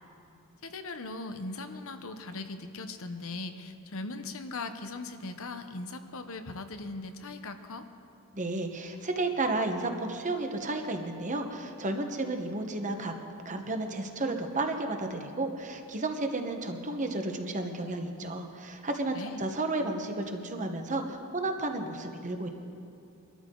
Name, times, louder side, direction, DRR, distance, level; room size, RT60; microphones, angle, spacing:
voice 1, 0.6-7.9 19.1-19.4, left 3 dB, 65° left, 8 dB, 0.9 m, -39 dB
voice 2, 8.3-13.1 13.4-22.5, right 2 dB, 35° right, 5 dB, 1.2 m, -32 dB
23.0 x 13.0 x 3.9 m, 2.7 s
head